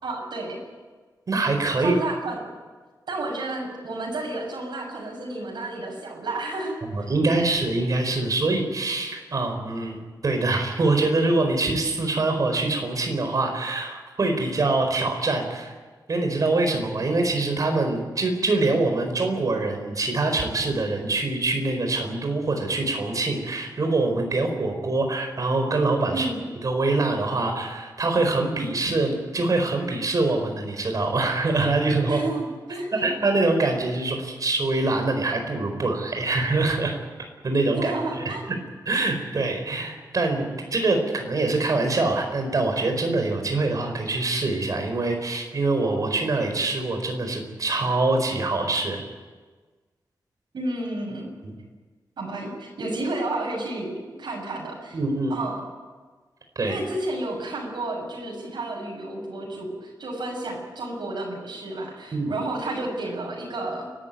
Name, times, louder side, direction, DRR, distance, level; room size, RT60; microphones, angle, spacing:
voice 1, 0.0-0.6 1.8-2.4 3.1-7.1 26.1-26.4 32.1-33.1 37.8-38.4 50.5-51.3 52.2-55.0 55.3-55.6 56.6-63.9, right 2 dB, 85° right, -2 dB, 6.8 m, -31 dB
voice 2, 1.3-2.0 6.8-10.0 10.2-15.7 16.1-26.3 26.6-32.2 33.0-36.9 37.4-38.2 38.8-49.0 51.4-51.5 54.9-55.3 56.5-56.8 62.1-62.3, right 2 dB, 50° right, 4 dB, 4.6 m, -24 dB
29.5 x 13.0 x 9.3 m, 1.4 s
wide cardioid pair, 150°, 8 cm